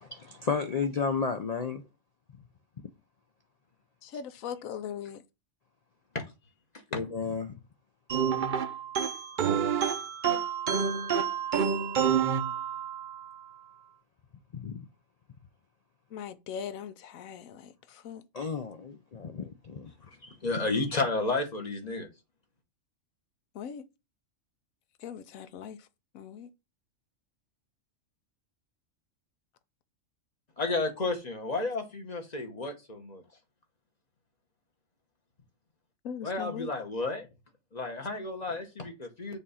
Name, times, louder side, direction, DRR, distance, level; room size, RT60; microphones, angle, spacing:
voice 1, 0.0-1.8 6.9-7.5 14.5-14.9 18.3-19.9, left 5 dB, 65° left, 0.4 m, -32 dB
voice 2, 4.1-5.2 16.1-17.6 18.0-18.2 23.6-23.8 25.0-25.8 26.1-26.5 36.0-36.7, left 8 dB, 85° left, 1.1 m, -39 dB
sound 1, 8.1-13.2, right 7 dB, 50° right, 0.6 m, -28 dB
voice 3, 20.2-22.1 30.6-33.2 36.2-37.3 37.7-39.4, left 3 dB, 35° left, 1.0 m, -32 dB
6.9 x 2.5 x 5.5 m
omnidirectional pair, 1.4 m